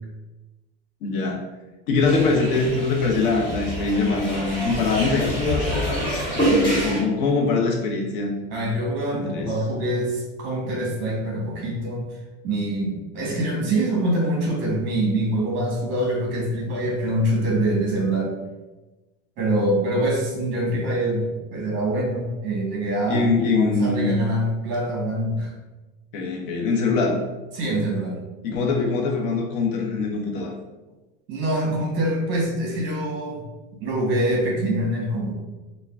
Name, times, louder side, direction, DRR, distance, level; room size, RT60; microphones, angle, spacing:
voice 1, 1.0-1.4 1.9-8.3 9.1-9.5 23.1-24.1 26.1-27.2 28.4-30.5, left 4 dB, 65° left, 0 dB, 0.7 m, -23 dB
sound 1, 2.0-7.0, equal, 30° left, 1.5 m, -26 dB
voice 2, 8.5-12.0 12.4-18.3 19.4-23.3 23.5-25.5 27.5-28.2 31.3-33.4 33.8-35.3, right 1 dB, 40° right, -2 dB, 0.9 m, -24 dB
3.2 x 2.2 x 2.3 m, 1.1 s
supercardioid pair, 165°, 29 cm